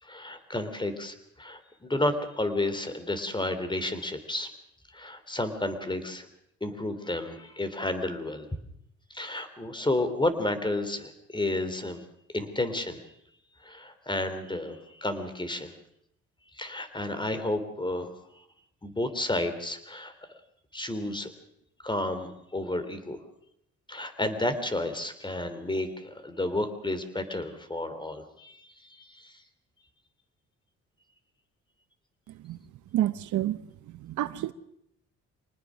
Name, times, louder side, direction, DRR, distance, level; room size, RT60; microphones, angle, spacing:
voice 1, 0.0-4.5 4.9-6.3 6.6-8.5 9.1-12.0 12.3-13.0 13.6-15.7 16.5-18.1 18.8-20.1 20.7-21.3 21.8-23.2 23.9-29.3, left 1 dB, 15° left, 3.1 m, -31 dB
voice 2, 32.9-33.6 34.0-34.5, right 13 dB, 75° right, 1.0 m, -28 dB
25.0 x 19.5 x 6.3 m
cardioid pair, 90°, 30 cm